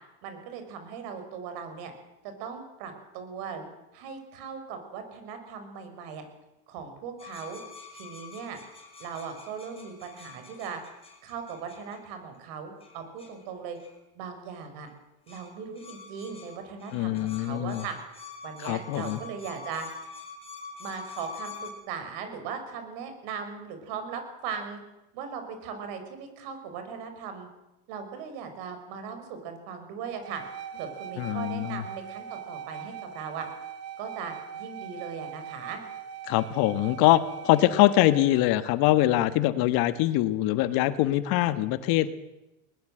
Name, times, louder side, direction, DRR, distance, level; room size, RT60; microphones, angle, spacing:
voice 1, 0.2-1.9 2.2-6.2 6.7-7.6 7.9-8.6 9.0-10.8 11.2-13.8 14.1-14.9 15.3-18.0 18.4-19.9 20.8-24.8 25.1-27.5 27.9-30.4 30.7-33.5 34.0-35.8, right 6 dB, 60° right, 7 dB, 6.1 m, -38 dB
sound 1, 7.2-12.0 12.8-13.4 13.7-13.9 14.9-15.0 15.3-21.7, left 5 dB, 15° left, 5.9 m, -46 dB
voice 2, 16.9-17.8 18.6-19.2 31.2-31.8 36.3-42.1, left 15 dB, 55° left, 12 dB, 1.5 m, -23 dB
sound 2, 30.2-38.5, right 8 dB, 35° right, 1.9 m, -41 dB
20.5 x 20.5 x 7.9 m, 0.94 s
supercardioid pair, 120°, 43 cm